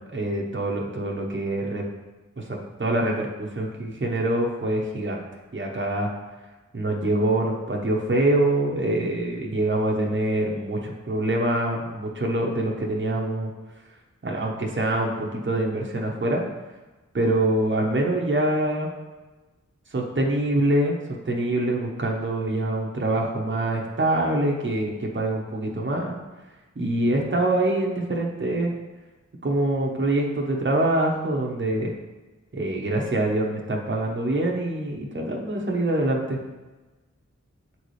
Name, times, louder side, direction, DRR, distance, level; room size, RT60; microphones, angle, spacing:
voice 1, 0.1-1.8 2.4-5.2 5.5-6.1 6.7-13.5 14.2-16.4 17.1-18.9 19.9-21.0 21.2-26.1 26.8-28.7 29.4-31.9 32.5-36.4, right 1 dB, 40° right, -1 dB, 0.9 m, -25 dB
7.4 x 4.1 x 3.2 m, 1.2 s
wide cardioid pair, 60°, 29 cm